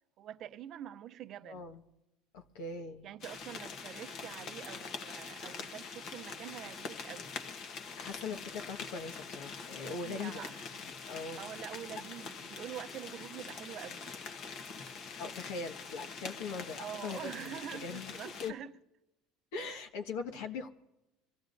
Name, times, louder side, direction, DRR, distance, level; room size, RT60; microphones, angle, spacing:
voice 1, 0.2-1.7 3.0-7.4 9.9-10.8 11.4-14.1 16.8-18.7 19.7-19.8, right 11 dB, 45° right, 0.5 m, -46 dB
voice 2, 1.4-1.8 2.3-3.1 3.4-3.5 8.0-10.4 10.8-12.0 15.2-18.5 19.5-20.7, left 4 dB, 80° left, 1.5 m, -41 dB
sound 1, 3.2-18.5, left 5 dB, 45° left, 1.2 m, -44 dB
24.0 x 15.5 x 2.6 m
supercardioid pair, 125°, 0 cm